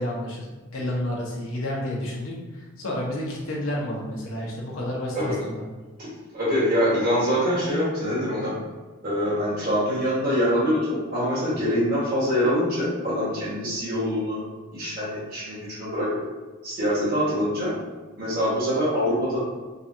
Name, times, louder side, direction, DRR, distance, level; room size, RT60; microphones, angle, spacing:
voice 1, 0.0-5.6, left 1 dB, 90° left, -4 dB, 1.0 m, -30 dB
voice 2, 6.3-8.5 9.0-14.4 14.7-16.2 16.6-17.7 18.2-19.4, equal, 45° right, -8 dB, 1.5 m, -24 dB
3.9 x 2.5 x 2.7 m, 1.2 s
head